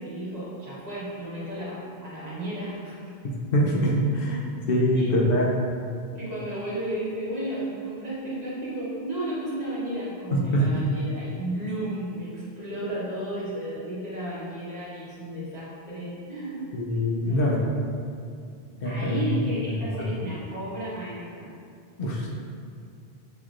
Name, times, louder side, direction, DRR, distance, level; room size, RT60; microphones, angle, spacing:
voice 1, 0.0-2.9 4.9-5.2 6.1-16.6 17.2-17.4 18.8-21.5, right 1 dB, 40° right, -9 dB, 1.2 m, -33 dB
voice 2, 3.2-4.4 4.7-5.5 10.3-10.8 16.7-17.6 18.8-19.2 22.0-22.3, equal, 65° left, -3 dB, 0.8 m, -24 dB
6.3 x 3.0 x 2.5 m, 2.3 s
omnidirectional pair, 1.1 m